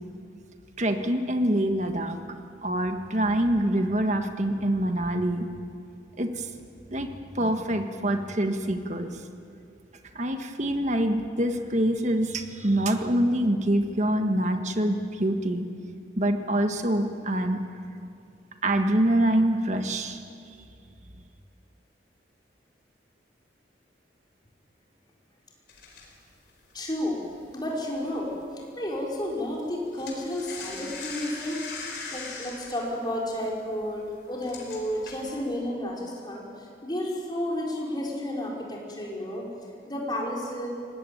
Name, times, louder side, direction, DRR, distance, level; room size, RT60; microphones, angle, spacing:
voice 1, 0.8-2.2 2.6-5.5 6.2-6.5 6.9-7.1 7.3-9.1 10.1-15.7 16.2-17.6 18.6-20.2, right 1 dB, 40° right, 6 dB, 1.6 m, -25 dB
sound 1, 25.7-28.4 28.7-29.0 29.2-35.6, left 4 dB, 60° left, 4.7 m, -41 dB
voice 2, 26.7-27.2 27.5-28.3 28.8-31.6 32.1-36.4 36.8-39.5 39.9-40.7, left 1 dB, 25° left, -2 dB, 4.5 m, -31 dB
23.0 x 19.0 x 9.3 m, 2.4 s
head